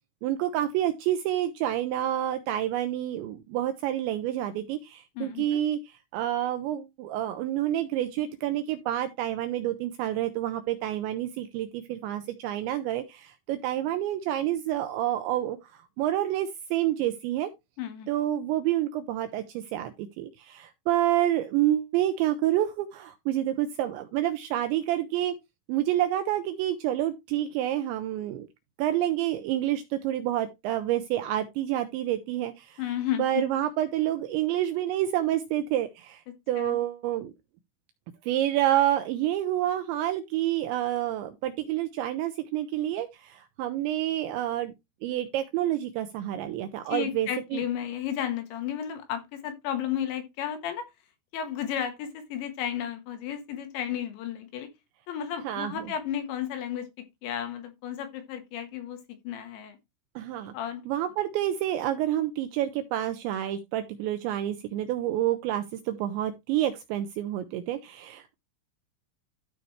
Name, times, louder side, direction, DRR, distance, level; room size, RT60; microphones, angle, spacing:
voice 1, 0.2-17.5 18.1-25.3 25.7-28.5 28.8-32.8 33.2-36.2 36.5-37.3 38.2-44.7 45.0-47.6 55.4-55.8 60.2-60.5 60.9-68.3, right 12 dB, 85° right, 2.6 m, -28 dB
voice 2, 5.2-5.6 17.8-18.1 32.8-33.4 36.6-36.8 46.9-50.9 51.3-54.7 55.1-56.9 57.2-59.0 59.2-59.8 60.5-60.8, left 10 dB, 75° left, 3.0 m, -33 dB
13.0 x 5.0 x 3.1 m
omnidirectional pair, 5.9 m